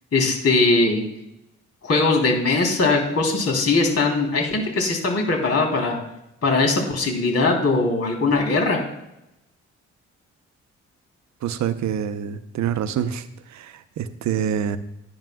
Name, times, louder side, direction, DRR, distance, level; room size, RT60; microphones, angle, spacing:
voice 1, 0.1-1.0 1.8-6.0 6.4-8.8, left 3 dB, 55° left, 1 dB, 3.3 m, -20 dB
voice 2, 11.4-14.8, right 9 dB, 65° right, 12 dB, 0.8 m, -26 dB
10.5 x 10.5 x 2.3 m, 0.85 s
supercardioid pair, 55°, 31 cm